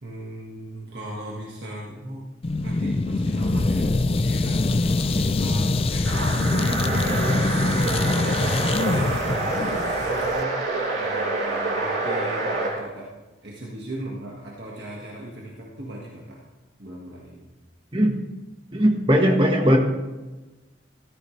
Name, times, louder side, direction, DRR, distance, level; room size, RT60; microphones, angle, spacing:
voice 1, 0.0-2.2 2.5-7.2 8.5-10.6 10.9-13.1 13.4-16.4 16.8-17.4, right 1 dB, 60° right, -3 dB, 1.7 m, -38 dB
sound 1, 2.4-10.4, left 2 dB, 30° left, 0.4 m, -24 dB
sound 2, 6.0-12.8, right 2 dB, 80° right, 3.0 m, -26 dB
voice 2, 18.7-19.8, equal, 25° right, 2 dB, 1.4 m, -18 dB
14.5 x 13.5 x 3.3 m, 1.2 s
head